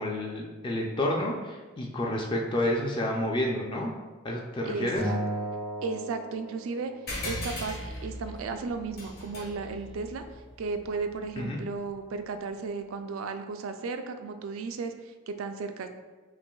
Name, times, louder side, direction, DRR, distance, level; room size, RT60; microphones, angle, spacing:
voice 1, 0.0-3.9 4.2-5.0 11.4-11.6, left 1 dB, 25° left, -1 dB, 0.4 m, -29 dB
voice 2, 4.7-5.2 5.8-6.9 7.2-10.2 10.6-15.9, right 4 dB, 90° right, 7 dB, 0.4 m, -34 dB
Acoustic guitar, 5.0-7.3, right 1 dB, 85° left, 1.5 m, -35 dB
sound 1, 7.1-12.0, left 1 dB, 50° left, 1.2 m, -40 dB
5.8 x 2.5 x 2.3 m, 1.3 s
head